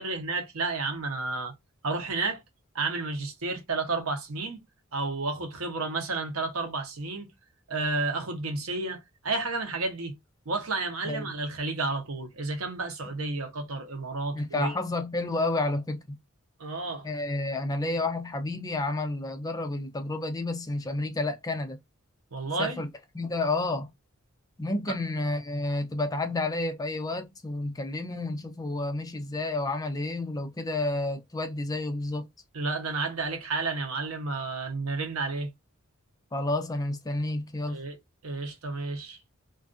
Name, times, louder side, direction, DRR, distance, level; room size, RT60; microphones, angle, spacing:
voice 1, 0.0-1.5 1.8-2.4 2.7-4.6 4.9-7.3 7.7-10.2 10.5-14.8 16.6-17.1 22.3-22.8 32.5-35.5 37.7-38.0 38.2-39.2, right 3 dB, 80° right, 0.8 m, -31 dB
voice 2, 14.3-16.2 17.0-21.8 22.6-22.9 23.1-23.9 24.6-32.3 36.3-37.8, left 2 dB, 15° left, 0.4 m, -30 dB
2.4 x 2.3 x 2.4 m
head